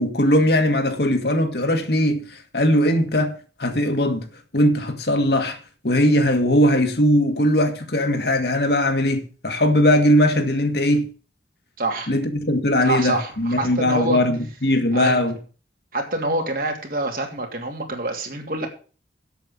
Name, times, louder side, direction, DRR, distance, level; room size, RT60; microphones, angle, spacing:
voice 1, 0.0-3.3 3.6-4.3 4.5-5.6 5.8-11.1 12.1-15.4, left 1 dB, 60° left, 1.8 m, -20 dB
voice 2, 11.8-12.1 12.8-14.2 14.9-15.2 15.9-18.7, right 2 dB, 50° right, 2.9 m, -26 dB
8.1 x 7.5 x 8.1 m
head